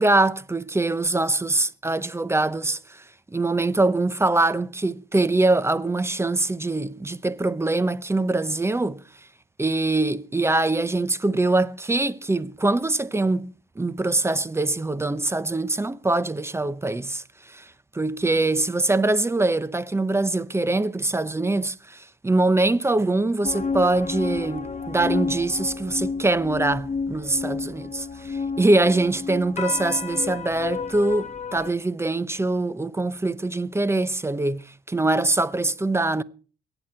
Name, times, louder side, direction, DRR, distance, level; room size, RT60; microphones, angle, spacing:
voice 1, 0.0-3.0 3.3-9.0 9.6-36.2, right 2 dB, 15° right, 0.8 m, -23 dB
sound 1, 23.4-31.7, left 5 dB, 35° left, 1.3 m, -31 dB
22.5 x 9.0 x 4.4 m
cardioid pair, 90°, 20 cm